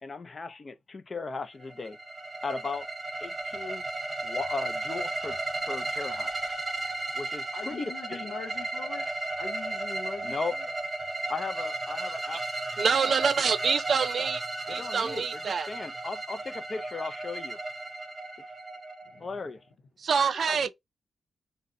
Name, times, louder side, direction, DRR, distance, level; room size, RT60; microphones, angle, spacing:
voice 1, 0.0-2.0 2.4-2.9 3.2-3.8 4.2-5.4 5.6-6.4 7.1-8.3 10.2-10.5 11.3-12.4 14.8-17.6 19.2-19.6, left 4 dB, 35° left, 0.4 m, -36 dB
sound 1, 1.6-19.4, right 2 dB, 15° right, 0.6 m, -35 dB
voice 2, 7.5-9.1 9.4-10.7 14.2-14.3 19.1-19.3 20.1-20.7, left 4 dB, 85° left, 0.7 m, -42 dB
voice 3, 12.8-14.4 14.7-15.7 20.0-20.7, right 6 dB, 55° right, 0.3 m, -26 dB
3.8 x 2.1 x 2.5 m
wide cardioid pair, 150°, 0 cm